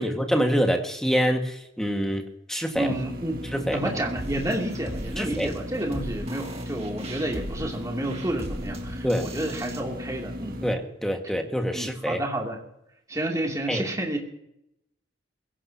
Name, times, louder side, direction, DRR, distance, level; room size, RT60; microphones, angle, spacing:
voice 1, 0.0-2.2 2.5-2.9 3.5-3.8 5.2-5.5 9.0-9.3 10.6-12.2 13.7-13.8, equal, 5° left, 3 dB, 1.7 m, -25 dB
sound 1, 2.7-10.7, equal, 50° right, 1.7 m, -37 dB
voice 2, 2.8-10.6 11.7-12.6 13.1-14.2, right 1 dB, 20° right, 0 dB, 2.7 m, -30 dB
sound 2, 4.2-9.8, right 1 dB, 35° right, 2.2 m, -38 dB
23.0 x 16.5 x 2.8 m, 0.81 s
head